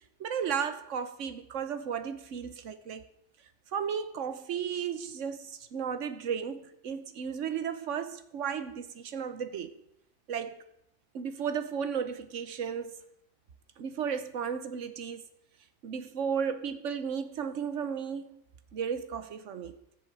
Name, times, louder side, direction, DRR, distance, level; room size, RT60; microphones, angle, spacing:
voice 1, 0.2-3.0 3.7-9.7 10.3-10.6 11.1-13.0 13.8-15.3 15.8-18.4 18.7-19.7, right 7 dB, 90° right, 1.3 m, -34 dB
13.5 x 7.7 x 7.3 m
omnidirectional pair, 1.2 m